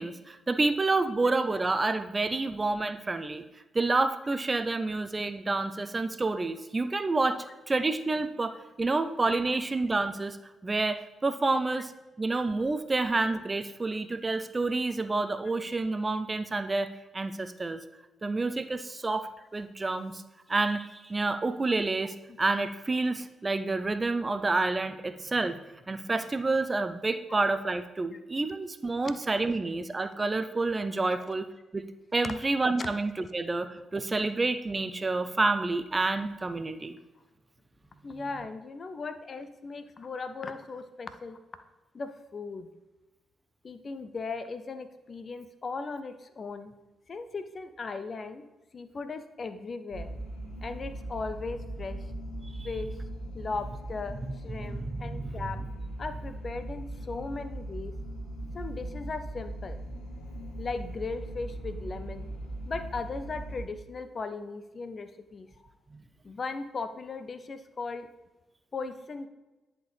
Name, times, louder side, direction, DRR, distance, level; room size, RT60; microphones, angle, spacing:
voice 1, 0.0-3.4 3.7-10.4 10.6-11.9 12.2-17.8 18.2-20.2 20.5-25.6 25.9-31.5 31.7-31.9 32.1-37.0 52.4-52.7 54.6-55.2, right 3 dB, 30° right, 10 dB, 0.5 m, -29 dB
voice 2, 38.0-41.4 41.9-42.7 43.6-46.8 47.1-48.4 48.7-50.1 50.6-52.1 52.6-53.0 53.3-55.7 56.0-57.9 58.5-59.8 60.6-62.3 62.7-65.7 66.2-68.1 68.7-69.3, left 4 dB, 45° left, 10 dB, 0.5 m, -37 dB
sound 1, 49.9-63.6, right 1 dB, 75° left, 1.3 m, -39 dB
10.5 x 4.3 x 3.4 m, 1.1 s
hypercardioid pair, 40°, 0 cm